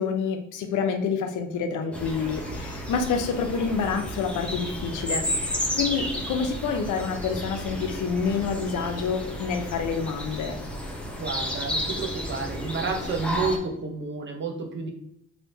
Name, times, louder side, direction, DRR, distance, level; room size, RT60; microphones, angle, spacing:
voice 1, 0.0-10.6, left 5 dB, 80° left, 6 dB, 0.6 m, -28 dB
Telephone, 1.5-2.7 3.2-5.6 5.9-6.3, left 2 dB, 35° left, 1.0 m, -46 dB
sound 1, 1.9-13.6, equal, 5° left, 0.6 m, -32 dB
voice 2, 11.2-14.9, right 4 dB, 40° right, 2 dB, 0.7 m, -30 dB
3.3 x 2.7 x 2.6 m, 0.79 s
cardioid pair, 90°, 30 cm